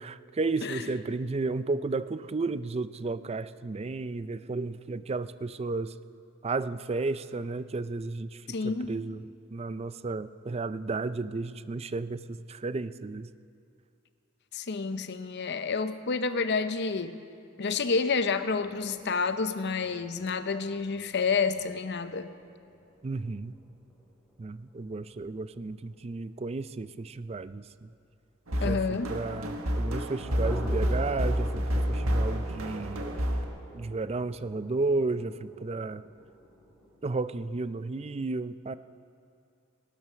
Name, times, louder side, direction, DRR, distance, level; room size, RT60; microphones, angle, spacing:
voice 1, 0.0-5.9 6.4-13.3 23.0-23.6 24.4-27.9 28.6-33.0 33.7-36.0 37.0-38.8, right 3 dB, 30° right, 14 dB, 0.4 m, -33 dB
voice 2, 8.5-8.9 14.5-17.2 17.6-22.3 28.6-29.2, left 4 dB, 55° left, 11 dB, 0.7 m, -29 dB
sound 1, 18.5-27.8 28.1-28.2 28.5-28.6 29.0-29.1 30.2-37.0, equal, ahead, 3.8 m, -47 dB
sound 2, 28.5-33.4, equal, 80° right, 1.6 m, -29 dB
18.5 x 12.0 x 6.2 m, 2.5 s
head